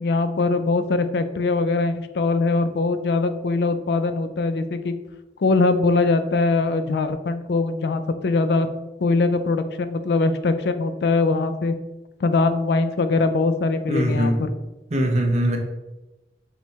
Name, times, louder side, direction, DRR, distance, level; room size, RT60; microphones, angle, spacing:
voice 1, 0.0-4.9 5.4-8.7 9.0-11.7 12.2-14.5, left 3 dB, 65° left, 9 dB, 0.4 m, -22 dB
voice 2, 13.9-14.4 14.9-15.6, right 1 dB, 40° right, 2 dB, 0.7 m, -21 dB
6.1 x 2.1 x 4.0 m, 1.0 s
head